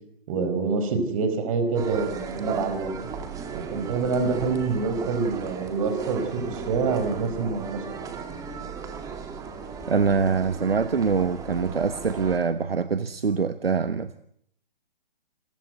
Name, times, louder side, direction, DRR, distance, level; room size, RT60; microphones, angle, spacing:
voice 1, 0.3-2.9 3.5-7.8, right 4 dB, 35° right, 9 dB, 4.7 m, -26 dB
sound 1, 1.7-12.4, right 5 dB, 10° right, 2.1 m, -35 dB
voice 2, 9.9-14.1, right 5 dB, 75° right, 12 dB, 1.2 m, -24 dB
27.5 x 16.0 x 8.0 m, 0.71 s
figure-of-eight pair, 140°, 29 cm